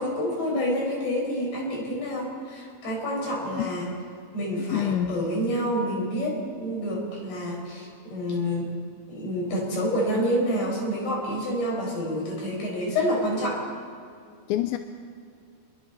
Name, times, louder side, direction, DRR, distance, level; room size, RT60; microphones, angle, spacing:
voice 1, 0.0-3.9 4.3-8.7 9.1-13.6, equal, 60° left, -2 dB, 7.3 m, -28 dB
voice 2, 4.7-5.3 14.5-14.8, left 11 dB, 90° left, 7 dB, 3.0 m, -26 dB
30.0 x 21.5 x 4.2 m, 2.2 s
omnidirectional pair, 5.2 m